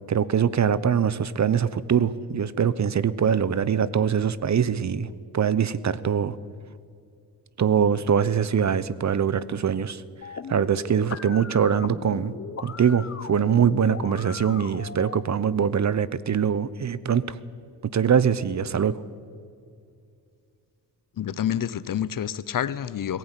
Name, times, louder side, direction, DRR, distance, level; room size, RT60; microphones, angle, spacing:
voice 1, 0.1-5.1 5.3-6.4 7.6-10.0 10.5-12.3 12.6-17.4 17.9-19.0, right 7 dB, 45° right, 0.9 m, -23 dB
sound 1, 10.2-15.2, left 6 dB, 35° left, 1.3 m, -38 dB
voice 2, 21.2-23.2, left 9 dB, 55° left, 0.9 m, -28 dB
22.0 x 15.5 x 10.0 m
cardioid pair, 100°, 40 cm